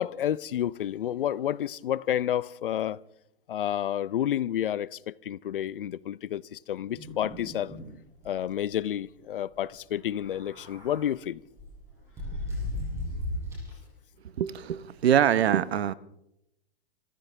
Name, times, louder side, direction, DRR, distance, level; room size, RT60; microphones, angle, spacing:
voice 1, 0.0-3.0 3.5-7.8 8.2-11.4, left 11 dB, 55° left, 0.5 m, -30 dB
sound 1, 6.9-7.9 8.2-8.3 8.6-8.8 10.0-11.1 11.6-13.8, left 1 dB, 10° right, 5.3 m, -36 dB
voice 2, 14.4-15.9, right 9 dB, 70° right, 1.0 m, -24 dB
26.5 x 14.5 x 3.4 m
hypercardioid pair, 170°, 33 cm